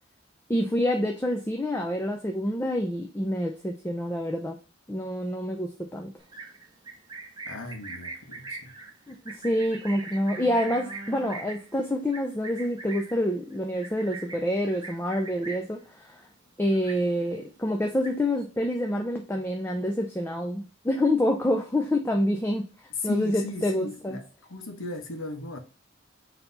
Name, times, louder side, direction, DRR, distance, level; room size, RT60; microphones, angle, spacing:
voice 1, 0.5-4.6 4.9-6.1 9.1-16.2 16.6-22.7 23.0-24.2, left 1 dB, 10° left, 0.4 m, -27 dB
Livestock farm animals working animals, 6.2-15.8 16.1-16.5 16.7-17.4 17.7-18.4, right 3 dB, 20° right, 0.8 m, -42 dB
voice 2, 7.5-8.7 22.9-25.6, left 3 dB, 90° left, 1.0 m, -37 dB
4.0 x 2.9 x 3.8 m
head